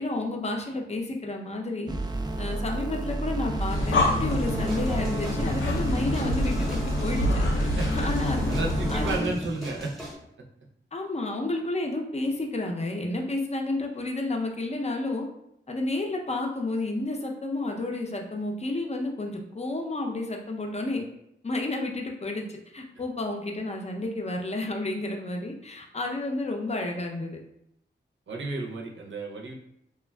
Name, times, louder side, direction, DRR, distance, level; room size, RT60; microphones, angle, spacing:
voice 1, 0.0-1.9 2.4-8.6 8.9-9.3 10.9-15.3 15.7-21.1 21.4-22.4 22.7-27.4, left 2 dB, 35° left, 2 dB, 0.5 m, -31 dB
sound 1, 1.9-9.3, right 1 dB, 20° right, 0.3 m, -31 dB
Breathing, 3.5-9.3, left 1 dB, 75° left, 0.5 m, -27 dB
sound 2, 4.3-10.2, equal, ahead, 0.8 m, -39 dB
voice 2, 7.8-8.1 8.5-9.9 28.3-29.5, right 2 dB, 70° right, -1 dB, 0.6 m, -32 dB
3.2 x 2.2 x 2.2 m, 0.78 s
cardioid pair, 50°, 20 cm